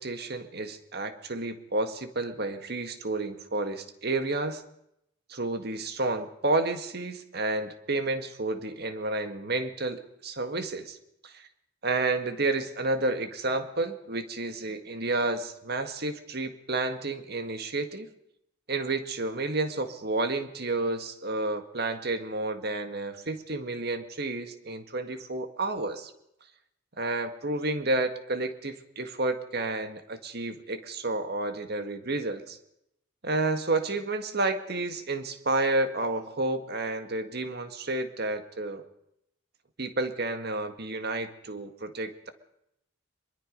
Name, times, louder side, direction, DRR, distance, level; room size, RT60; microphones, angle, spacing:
voice 1, 0.0-4.6 5.3-11.0 11.2-11.5 11.8-18.1 18.7-26.1 27.0-32.6 33.2-38.8 39.8-42.3, right 2 dB, 55° right, 8 dB, 1.9 m, -30 dB
24.0 x 22.0 x 5.4 m, 0.80 s
head